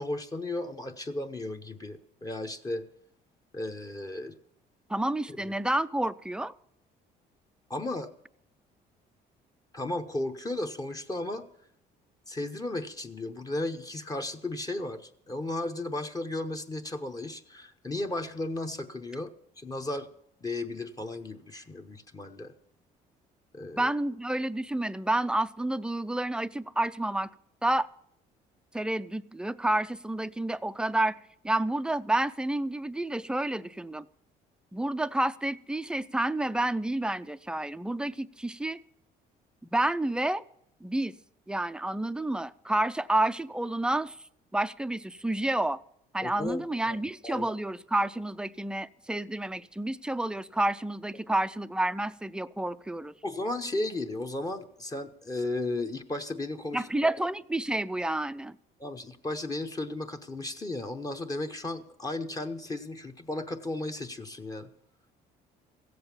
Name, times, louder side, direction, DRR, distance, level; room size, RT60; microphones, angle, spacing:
voice 1, 0.0-2.9 3.5-4.3 5.4-5.5 7.7-8.1 9.7-11.5 12.3-20.1 20.4-22.5 23.5-23.9 46.2-47.0 47.2-47.5 53.2-57.1 58.8-64.7, left 2 dB, 20° left, 0.8 m, -35 dB
voice 2, 4.9-6.5 23.8-27.3 27.6-27.9 28.7-31.2 31.4-34.1 34.7-38.8 39.6-40.4 40.8-41.1 41.5-44.2 44.5-45.8 46.1-53.1 56.7-58.6, right 1 dB, 5° right, 0.4 m, -29 dB
15.5 x 7.9 x 7.0 m
cardioid pair, 110°, 17 cm